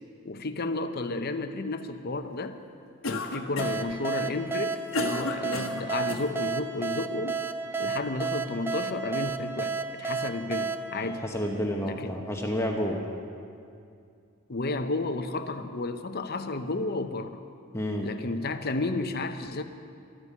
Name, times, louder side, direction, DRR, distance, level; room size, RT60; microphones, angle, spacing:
voice 1, 0.2-2.6 3.1-7.4 7.8-11.2 11.8-12.2 14.5-17.4 18.0-19.6, left 2 dB, 50° left, 8 dB, 0.8 m, -32 dB
Cough, 3.0-3.9 4.5-6.3, left 3 dB, 75° left, 1.3 m, -33 dB
sound 1, 3.6-12.0, right 4 dB, 10° right, 0.4 m, -33 dB
voice 2, 11.0-13.0 17.7-18.1, equal, 15° left, 0 dB, 1.0 m, -30 dB
13.5 x 9.5 x 9.9 m, 2.4 s
head